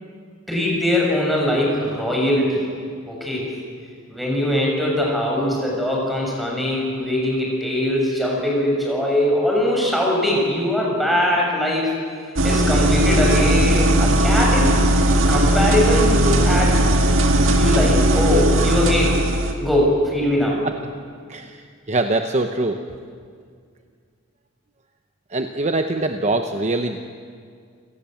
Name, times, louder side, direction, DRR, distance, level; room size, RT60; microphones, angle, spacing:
voice 1, 0.5-2.6 3.1-3.5 4.1-11.9 12.4-14.7 15.3-16.8 17.5-19.1 19.6-20.6, left 1 dB, ahead, -3 dB, 6.7 m, -21 dB
sound 1, 12.4-19.5, right 1 dB, 70° right, 2.0 m, -17 dB
voice 2, 21.3-22.8 25.3-27.0, right 2 dB, 35° right, 6 dB, 0.9 m, -23 dB
29.0 x 17.5 x 7.8 m, 2.1 s
head